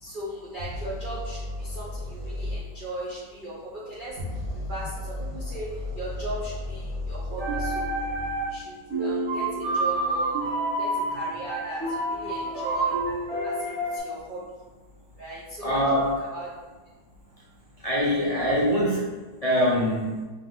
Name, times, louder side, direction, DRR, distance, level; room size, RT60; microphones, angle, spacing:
voice 1, 0.0-3.6 3.9-4.1 4.7-5.7 6.0-8.0 8.5-8.7 9.0-10.5 10.8-11.8 12.1-12.9 13.4-14.4 15.2-15.8 16.3-16.5, right 1 dB, 60° right, -8 dB, 0.5 m, -37 dB
sound 1, 0.6-2.6 4.1-8.4, left 1 dB, 35° right, 1.0 m, -34 dB
sound 2, 7.3-8.6 8.9-14.0, right 2 dB, 15° right, 0.5 m, -28 dB
voice 2, 15.6-16.1 17.8-19.0 19.4-20.2, equal, 70° left, -7 dB, 0.3 m, -23 dB
3.4 x 3.2 x 3.7 m, 1.3 s
omnidirectional pair, 1.8 m